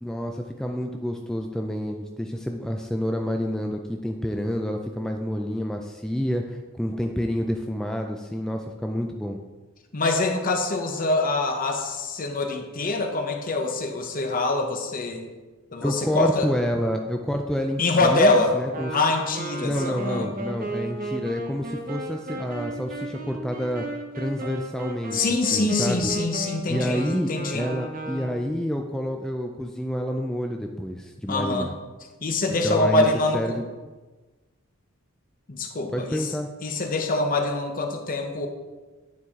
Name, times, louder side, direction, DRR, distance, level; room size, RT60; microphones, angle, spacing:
voice 1, 0.0-9.4 15.8-18.9 19.6-23.8 24.2-25.2 25.5-26.1 26.7-31.7 32.6-33.1 33.3-33.6 35.9-36.5, equal, 5° left, 3 dB, 0.3 m, -28 dB
voice 2, 9.9-15.3 15.7-16.5 17.8-18.5 18.9-20.3 25.1-27.7 31.3-31.7 32.2-33.6 35.5-36.3 36.6-38.5, left 2 dB, 45° left, 4 dB, 0.8 m, -24 dB
Wind instrument woodwind instrument, 18.7-28.6, right 1 dB, 45° right, 0.8 m, -34 dB
9.4 x 4.7 x 3.6 m, 1.3 s
head